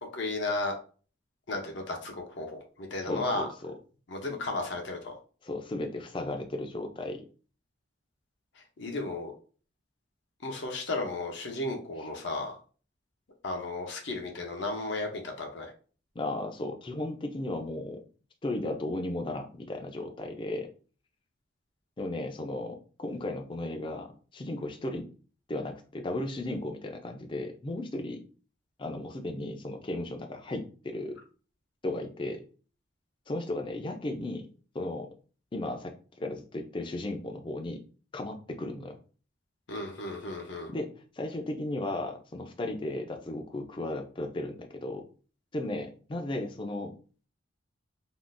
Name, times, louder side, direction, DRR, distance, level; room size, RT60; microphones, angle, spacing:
voice 1, 0.1-0.7 1.5-3.5 4.1-5.2 8.8-9.3 10.4-12.6 13.4-15.7 39.7-40.7, left 2 dB, 70° left, 2 dB, 0.6 m, -34 dB
voice 2, 3.0-3.7 5.4-7.3 16.2-18.0 18.4-20.7 22.0-25.0 25.5-28.2 28.8-31.2 31.8-32.4 33.3-34.5 34.7-35.1 35.5-37.8 38.1-39.0 40.7-45.0 45.5-46.9, left 2 dB, 25° left, 4 dB, 0.4 m, -35 dB
3.6 x 2.3 x 2.5 m, 0.39 s
head